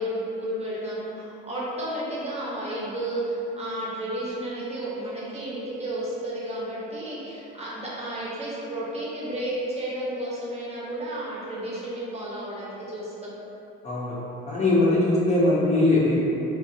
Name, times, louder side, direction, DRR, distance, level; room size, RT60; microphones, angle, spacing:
voice 1, 0.0-13.3, right 1 dB, 20° right, -8 dB, 0.9 m, -32 dB
voice 2, 14.5-16.1, left 2 dB, 20° left, -9 dB, 0.6 m, -21 dB
2.5 x 2.2 x 2.6 m, 2.9 s
supercardioid pair, 75°, 33 cm